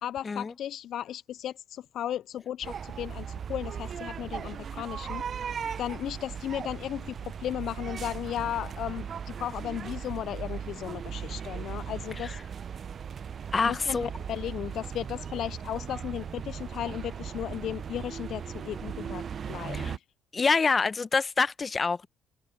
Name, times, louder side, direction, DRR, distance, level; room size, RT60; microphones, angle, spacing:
voice 1, 0.0-5.2 5.8-12.4 13.7-20.0, left 11 dB, 65° left, 0.4 m, -35 dB
sound 1, 2.6-20.0, right 7 dB, 50° right, 0.6 m, -38 dB
voice 2, 13.5-14.1 19.7-19.9 20.3-22.1, left 4 dB, 30° left, 1.1 m, -26 dB
open air
supercardioid pair, 65°, 0 cm